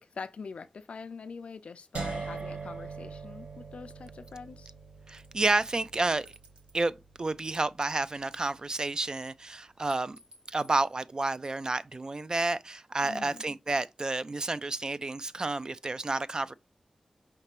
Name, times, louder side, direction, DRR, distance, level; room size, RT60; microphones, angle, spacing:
voice 1, 0.0-4.7 13.0-13.4, left 5 dB, 75° left, 0.4 m, -44 dB
sound 1, 1.9-7.9, right 4 dB, 80° right, 1.0 m, -42 dB
voice 2, 5.1-6.3 6.7-10.2 10.5-16.5, right 2 dB, 35° right, 0.3 m, -30 dB
sound 2, 5.2-5.5 6.3-6.9 7.5-8.8 9.9-11.0, equal, 55° right, 1.3 m, -57 dB
5.0 x 3.3 x 2.9 m
wide cardioid pair, 95°, 2 cm